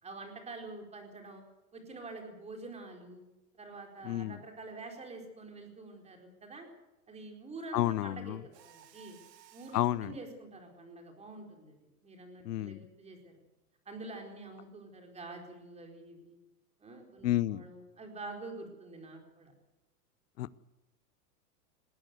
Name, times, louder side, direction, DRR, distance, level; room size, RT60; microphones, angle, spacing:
voice 1, 0.0-1.4 1.7-3.2 3.6-6.7 7.1-9.2 9.5-13.4 13.9-16.4 16.8-19.5, right 3 dB, 15° right, 3 dB, 4.4 m, -47 dB
voice 2, 4.0-4.4 7.7-8.4 9.7-10.1 12.5-12.8 17.2-17.6 20.4-20.6, left 14 dB, 75° left, 19 dB, 0.8 m, -31 dB
Mechanisms, 8.5-10.0, right 10 dB, 90° right, 1.8 m, -58 dB
20.5 x 17.5 x 8.0 m, 0.97 s
supercardioid pair, 145°, 47 cm